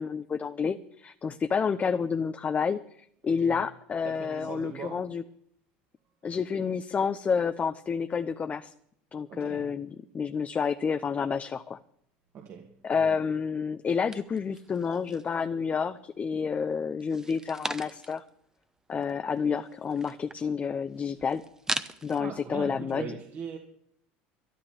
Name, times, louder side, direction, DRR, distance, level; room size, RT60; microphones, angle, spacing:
voice 1, 0.0-5.2 6.2-8.7 9.1-11.8 12.8-18.2 18.9-21.4 22.0-23.2, left 6 dB, 30° left, 0.8 m, -29 dB
voice 2, 4.0-5.0 9.3-9.7 12.3-13.2 22.1-23.6, right 6 dB, 50° right, 2.0 m, -41 dB
sound 1, 14.1-15.4 15.8-16.5 17.0-18.3 18.6-18.7 18.9-22.2, right 2 dB, 10° right, 1.0 m, -39 dB
13.0 x 11.0 x 7.2 m
supercardioid pair, 95°, 5 cm